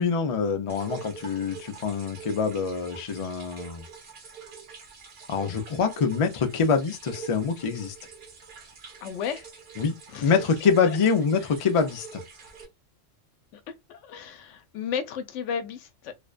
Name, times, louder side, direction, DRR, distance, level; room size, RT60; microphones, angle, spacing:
voice 1, 0.0-3.8 5.3-7.9 9.8-10.0 10.2-12.2, left 5 dB, 50° left, 0.4 m, -25 dB
sound 1, 0.7-12.7, right 6 dB, 60° right, 0.9 m, -45 dB
voice 2, 9.0-9.5 10.1-10.3 10.8-11.0 12.4-12.5 13.5-16.1, left 7 dB, 90° left, 0.9 m, -34 dB
2.5 x 2.1 x 2.3 m
omnidirectional pair, 1.2 m